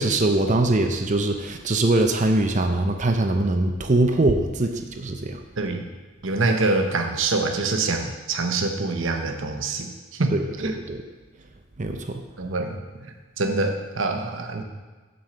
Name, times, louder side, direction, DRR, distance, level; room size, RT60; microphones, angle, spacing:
voice 1, 0.0-5.4 10.3-10.4 10.9-11.0 11.8-12.2, right 2 dB, 35° right, 5 dB, 0.6 m, -22 dB
voice 2, 5.6-5.9 6.2-10.3 10.6-10.7 12.4-14.6, right 3 dB, 65° right, 5 dB, 0.9 m, -25 dB
7.4 x 5.5 x 6.5 m, 1.3 s
head